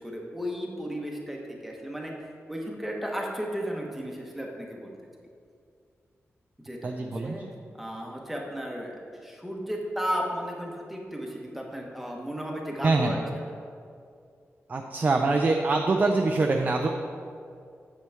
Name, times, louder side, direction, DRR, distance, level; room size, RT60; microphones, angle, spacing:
voice 1, 0.0-4.9 6.6-7.4 7.8-8.9 9.2-13.2, equal, 5° right, -1 dB, 1.0 m, -34 dB
voice 2, 6.8-7.4 12.8-13.1 14.7-16.9, right 3 dB, 35° right, 2 dB, 0.4 m, -24 dB
8.2 x 7.5 x 3.5 m, 2.3 s
wide cardioid pair, 180°, 5 cm